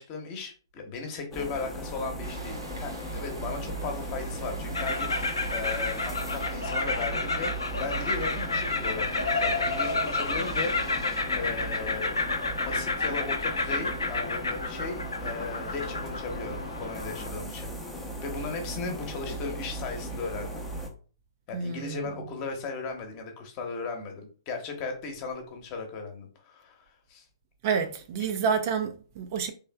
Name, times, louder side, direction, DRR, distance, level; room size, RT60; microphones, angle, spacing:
voice 1, 0.0-7.5 7.8-12.1 12.6-20.7 21.5-27.2, left 4 dB, 30° left, 0.9 m, -37 dB
sound 1, 1.3-20.9, right 1 dB, 5° left, 0.6 m, -37 dB
sound 2, 2.2-11.2, right 1 dB, 80° right, 1.0 m, -44 dB
sound 3, 4.7-17.3, left 3 dB, 85° left, 0.5 m, -30 dB
voice 2, 21.5-22.1 27.6-29.5, right 6 dB, 40° right, 0.4 m, -29 dB
3.4 x 3.2 x 2.2 m
figure-of-eight pair, 125°, 2 cm